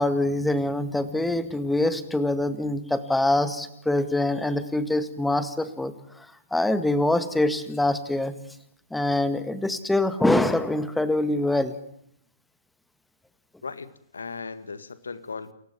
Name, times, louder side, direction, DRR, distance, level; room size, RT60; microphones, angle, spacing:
voice 1, 0.0-8.3 8.9-11.8, left 1 dB, 5° left, 12 dB, 2.0 m, -24 dB
voice 2, 13.6-15.5, left 4 dB, 70° left, 15 dB, 1.9 m, -37 dB
29.0 x 15.5 x 9.2 m, 0.71 s
figure-of-eight pair, 115°, 0 cm